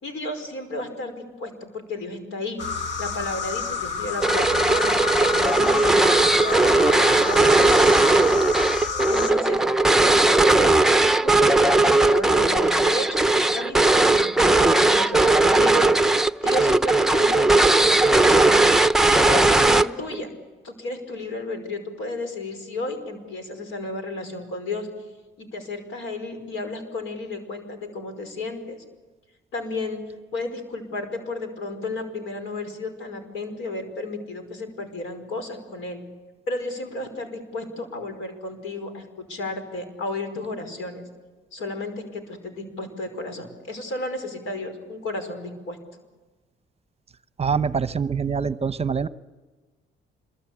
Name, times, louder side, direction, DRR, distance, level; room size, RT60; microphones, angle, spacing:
voice 1, 0.0-1.5 1.9-2.6 3.0-8.3 9.1-9.6 10.0-15.8 16.1-20.3 20.6-24.9 25.4-28.8 29.5-30.0 30.3-36.0 36.5-41.0 41.5-45.8, left 2 dB, 85° left, 8 dB, 5.3 m, -33 dB
sound 1, 2.6-9.3, left 6 dB, 65° left, 1.8 m, -29 dB
sound 2, 4.2-20.2, right 2 dB, ahead, 0.8 m, -18 dB
voice 2, 47.4-49.1, right 6 dB, 30° right, 13 dB, 0.9 m, -24 dB
26.5 x 22.5 x 8.7 m, 1.3 s
cardioid pair, 90°, 20 cm